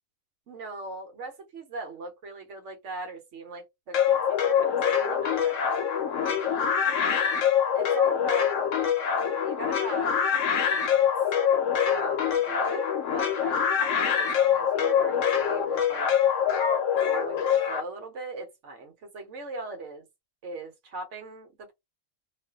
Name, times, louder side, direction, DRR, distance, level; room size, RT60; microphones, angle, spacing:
voice 1, 0.5-6.4 7.7-8.6 9.2-10.2 10.6-11.1 11.9-16.1 17.1-20.1 20.4-21.7, right 3 dB, 70° right, 1.1 m, -40 dB
sound 1, 3.9-17.8, left 8 dB, 80° left, 1.0 m, -24 dB
2.5 x 2.3 x 2.3 m
omnidirectional pair, 1.3 m